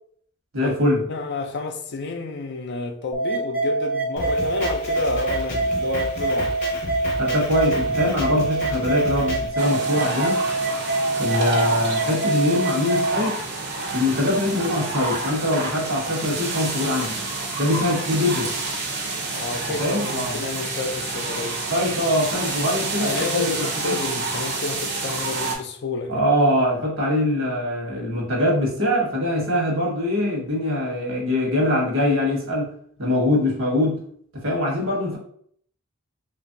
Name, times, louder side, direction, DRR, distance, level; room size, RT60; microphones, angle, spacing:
voice 1, 0.5-1.0 7.2-10.5 11.2-13.4 13.9-17.2 17.6-18.5 19.8-20.4 21.7-24.0 26.1-32.7 33.0-34.0 34.3-35.2, left 1 dB, 70° right, 1.1 m, -23 dB
voice 2, 1.1-6.6 19.3-21.6 23.0-26.3, left 3 dB, 50° left, 0.4 m, -30 dB
sound 1, 3.1-13.1, right 2 dB, 5° right, 0.6 m, -25 dB
Drum kit, 4.2-9.5, left 1 dB, 35° left, 0.8 m, -32 dB
sound 2, 9.6-25.6, right 3 dB, 50° right, 0.5 m, -29 dB
2.9 x 2.5 x 2.6 m
head